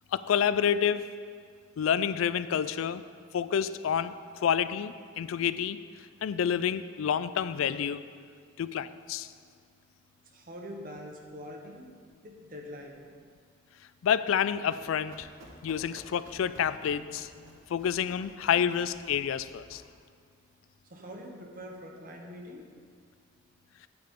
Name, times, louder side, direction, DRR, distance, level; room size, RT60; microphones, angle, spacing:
voice 1, 0.1-1.0 1.8-3.0 3.3-5.8 6.2-8.0 8.6-9.3 14.0-15.3 15.6-17.3 17.7-19.8, left 8 dB, 85° left, 14 dB, 0.3 m, -28 dB
voice 2, 10.3-11.9 12.2-13.1 20.9-22.7, equal, 45° right, 1 dB, 1.0 m, -44 dB
Run, 14.4-20.0, right 1 dB, 75° right, 1.2 m, -54 dB
9.0 x 8.9 x 3.7 m, 2.1 s
head